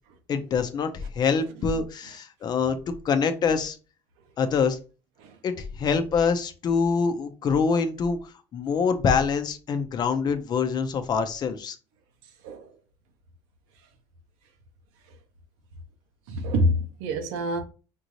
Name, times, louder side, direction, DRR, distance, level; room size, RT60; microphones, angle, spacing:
voice 1, 0.3-0.9 1.2-2.8 3.0-3.8 4.4-4.8 5.4-5.5 5.8-8.2 8.5-11.8, left 5 dB, 45° left, 0.8 m, -25 dB
voice 2, 12.4-12.7 16.3-17.6, equal, 85° right, 1.0 m, -27 dB
5.3 x 2.7 x 3.1 m
supercardioid pair, 105°, 10 cm